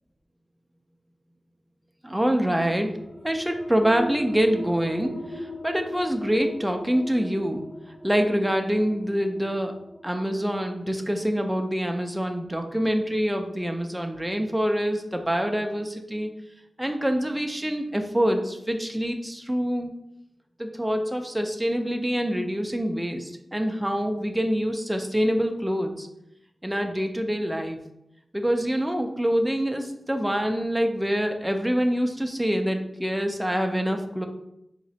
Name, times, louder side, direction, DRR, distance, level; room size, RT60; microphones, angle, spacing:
voice 1, 2.0-2.9 3.2-7.7 8.0-9.7 10.0-16.3 16.8-19.9 20.6-26.1 26.6-27.8 28.3-34.3, equal, 5° right, 4 dB, 0.4 m, -25 dB
sound 1, 2.8-13.9, equal, 45° left, 1.1 m, -39 dB
4.1 x 2.9 x 2.7 m, 0.82 s
wide cardioid pair, 105°, 0 cm